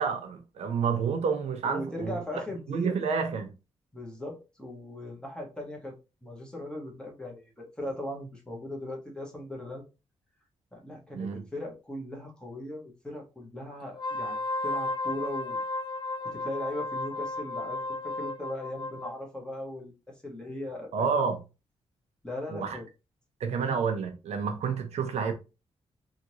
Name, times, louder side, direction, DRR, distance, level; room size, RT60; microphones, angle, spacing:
voice 1, 0.0-2.2 2.7-3.5 11.1-11.4 20.9-21.4 22.5-22.8 23.4-25.3, right 6 dB, 90° right, 0.7 m, -29 dB
voice 2, 1.6-2.9 3.9-6.0 6.2-9.9 10.7-15.6 16.2-21.1 22.2-22.9, left 1 dB, 10° left, 1.2 m, -39 dB
Wind instrument woodwind instrument, 13.9-19.2, left 2 dB, 45° left, 0.6 m, -34 dB
3.7 x 2.5 x 3.0 m
wide cardioid pair, 130°, 11 cm